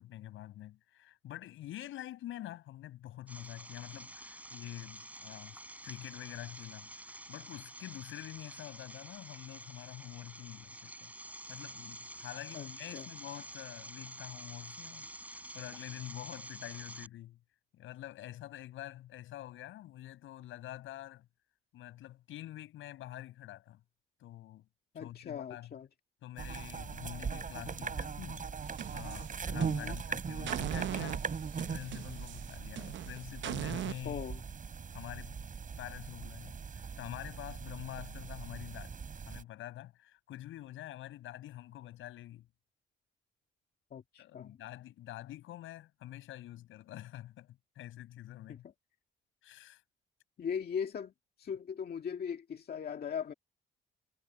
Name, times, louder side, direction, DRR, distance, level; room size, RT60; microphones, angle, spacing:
voice 1, 0.0-11.1 11.5-15.1 15.3-17.4 17.7-21.3 21.7-23.8 24.2-24.7 24.9-25.7 26.2-28.5 28.9-31.2 31.6-34.2 34.9-35.5 35.8-39.0 39.2-42.5 44.2-48.7 49.4-49.8, left 14 dB, 85° left, 6.8 m, -46 dB
sound 1, 3.3-17.1, right 1 dB, 5° right, 6.0 m, -49 dB
voice 2, 12.5-13.1 24.9-25.9 29.6-30.0 34.0-34.4 43.9-44.6 48.5-48.6 50.4-51.1 51.4-53.3, left 7 dB, 50° left, 2.0 m, -39 dB
sound 2, 26.4-39.4, right 6 dB, 40° right, 5.8 m, -40 dB
sound 3, 28.6-30.0 30.5-34.0, right 12 dB, 70° right, 0.8 m, -40 dB
cardioid pair, 90°, 20 cm